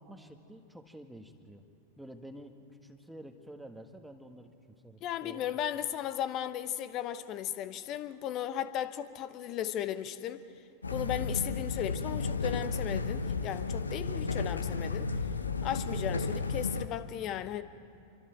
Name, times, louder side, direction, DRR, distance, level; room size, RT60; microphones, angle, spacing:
voice 1, 0.0-1.6 2.0-2.6 2.8-4.5 4.8-5.4, right 1 dB, 5° right, 6 dB, 1.6 m, -49 dB
voice 2, 5.0-10.4 10.9-15.1 15.6-17.6, left 11 dB, 35° left, 13 dB, 0.9 m, -36 dB
sound 1, 10.8-16.9, left 4 dB, 75° left, 0.9 m, -33 dB
27.5 x 24.5 x 4.6 m, 2.6 s
figure-of-eight pair, 90°, 0 cm